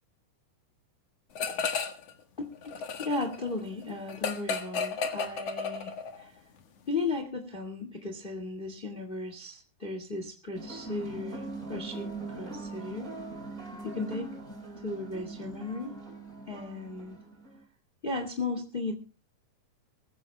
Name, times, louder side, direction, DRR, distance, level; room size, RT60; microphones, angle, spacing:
sound 1, 1.4-2.1 2.4-6.2, left 5 dB, 55° left, 2.3 m, -33 dB
voice 1, 2.4-5.9 6.2-6.3 6.9-13.1 13.8-14.3 14.8-16.0 16.5-17.2 18.0-18.9, left 3 dB, 20° left, 5 dB, 1.6 m, -36 dB
sound 2, 10.5-17.6, right 3 dB, 25° right, 4.9 m, -41 dB
23.0 x 15.0 x 2.2 m, 0.32 s
omnidirectional pair, 3.7 m